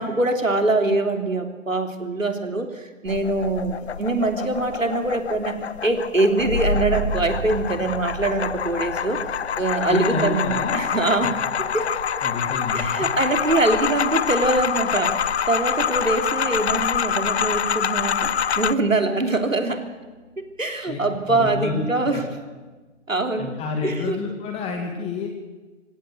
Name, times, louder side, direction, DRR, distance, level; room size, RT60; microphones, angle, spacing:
voice 1, 0.0-9.2 9.6-11.3 11.7-12.0 12.7-19.9 20.4-22.3 23.1-23.5 23.8-24.2, right 2 dB, 85° right, 6 dB, 3.3 m, -23 dB
sound 1, 3.1-18.7, left 8 dB, 55° left, 0.9 m, -26 dB
sound 2, 6.4-17.6, left 1 dB, 35° left, 5.3 m, -34 dB
voice 2, 9.9-10.8 12.2-13.1 20.9-21.0 21.3-22.2 23.4-25.4, left 4 dB, 15° left, 3 dB, 2.1 m, -29 dB
26.5 x 16.5 x 8.1 m, 1.3 s
figure-of-eight pair, 130°, 38 cm